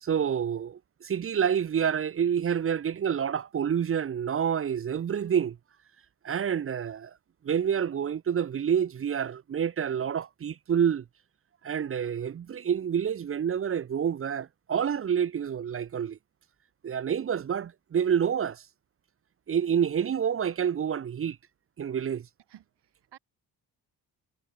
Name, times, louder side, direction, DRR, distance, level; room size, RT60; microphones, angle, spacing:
voice 1, 0.0-5.6 6.2-7.1 7.4-11.0 11.6-16.2 16.8-18.6 19.5-21.4 21.8-22.3, right 8 dB, 35° right, 0.5 m, -28 dB
voice 2, 22.5-23.2, right 11 dB, 80° right, 3.0 m, -54 dB
wide cardioid pair, 165°, 40 cm